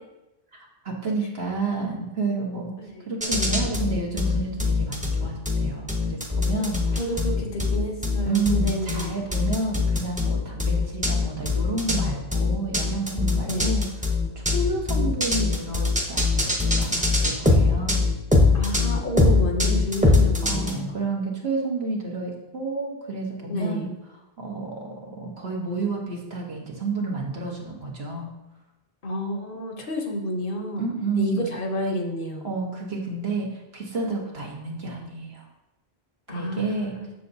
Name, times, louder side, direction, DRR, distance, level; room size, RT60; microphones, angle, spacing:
voice 1, 0.8-2.7 3.1-7.0 8.2-13.8 14.3-18.1 20.4-23.9 24.4-28.3 30.8-31.4 32.4-35.5 36.3-36.9, right 3 dB, 75° right, -1 dB, 1.5 m, -30 dB
voice 2, 2.8-3.1 6.6-6.7 7.0-9.1 13.5-13.7 18.5-20.9 23.5-23.9 29.0-30.8 31.2-32.5 36.3-37.1, equal, 60° left, 3 dB, 1.0 m, -30 dB
sound 1, 3.2-20.7, left 3 dB, 10° right, 0.7 m, -22 dB
6.8 x 6.7 x 2.7 m, 0.95 s
omnidirectional pair, 1.1 m